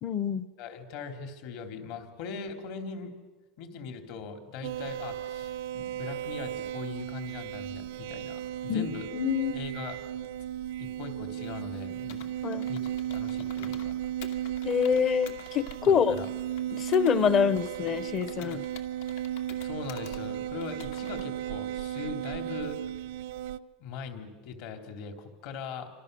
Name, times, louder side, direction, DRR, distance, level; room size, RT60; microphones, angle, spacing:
voice 1, 0.0-0.4 8.7-8.9 9.1-9.6 12.4-12.6 14.6-16.2 16.7-18.6, left 7 dB, 30° left, 17 dB, 0.8 m, -26 dB
voice 2, 0.6-3.1 3.6-9.1 9.5-10.0 10.8-12.3 12.7-14.0 15.8-16.3 19.6-22.8 23.8-25.9, left 5 dB, 60° left, 6 dB, 3.1 m, -40 dB
sound 1, 4.6-23.6, right 11 dB, 85° right, 0.7 m, -35 dB
Computer keyboard, 12.1-13.9 14.2-17.2 17.6-20.2 20.6-21.3, left 9 dB, 80° left, 2.3 m, -49 dB
29.0 x 26.5 x 6.8 m, 1.3 s
cardioid pair, 165°, 0 cm